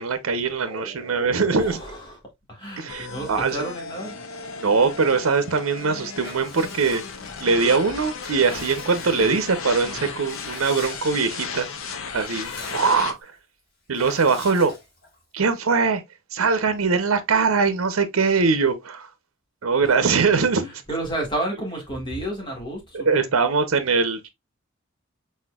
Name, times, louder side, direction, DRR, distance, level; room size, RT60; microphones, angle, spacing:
voice 1, 0.0-1.8 2.8-3.6 4.6-7.0 7.4-11.7 12.1-13.3 13.9-14.7 15.3-16.0 16.3-19.1 19.6-20.8 22.9-24.3, right 4 dB, 85° right, 0.7 m, -22 dB
voice 2, 0.7-2.2 2.5-4.2 12.6-12.8 19.8-19.9 20.6-23.3, right 1 dB, 25° left, 1.9 m, -32 dB
sound 1, 2.9-13.1, left 5 dB, 75° left, 0.7 m, -35 dB
Water / Bathtub (filling or washing) / Liquid, 6.2-7.4 7.9-9.6 10.3-11.2 11.6-11.7 12.0-13.2 13.9-15.2, left 2 dB, 45° left, 2.3 m, -43 dB
4.3 x 4.1 x 2.3 m
head